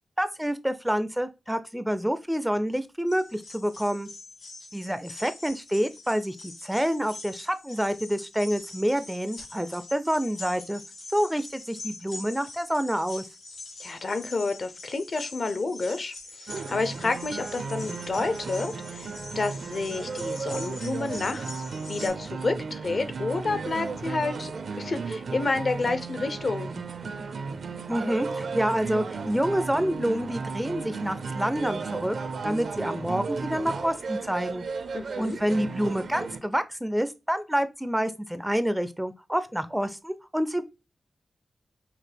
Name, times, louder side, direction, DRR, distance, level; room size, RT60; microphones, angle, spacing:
voice 1, 0.2-4.1 4.7-10.8 11.1-13.3 27.9-32.2 32.4-34.6 35.2-40.7, equal, 5° right, 0.4 m, -28 dB
sound 1, 3.1-22.1, left 2 dB, 75° left, 2.9 m, -44 dB
voice 2, 13.8-24.5 24.8-26.7 34.9-35.4, left 3 dB, 55° left, 0.6 m, -30 dB
sound 2, 16.5-36.4, right 4 dB, 75° right, 0.6 m, -34 dB
5.9 x 2.4 x 3.3 m
wide cardioid pair, 125°, 0 cm